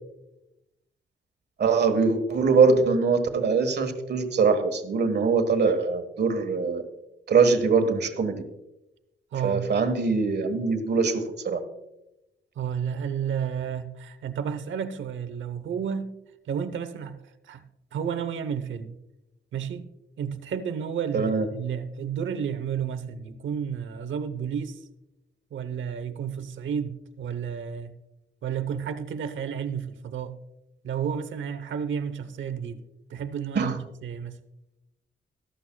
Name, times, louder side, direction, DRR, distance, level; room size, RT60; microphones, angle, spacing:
voice 1, 1.6-6.8 7.3-8.4 9.4-11.6 21.1-21.5 33.5-33.8, right 4 dB, 60° right, 1.4 m, -22 dB
voice 2, 9.3-9.6 12.6-16.2 16.5-17.6 17.9-19.0 19.5-19.9 20.2-24.8 25.5-27.9 28.4-30.3 30.8-32.8 33.1-34.4, right 7 dB, 75° right, 0.9 m, -31 dB
14.5 x 12.5 x 2.3 m
cardioid pair, 95°, 20 cm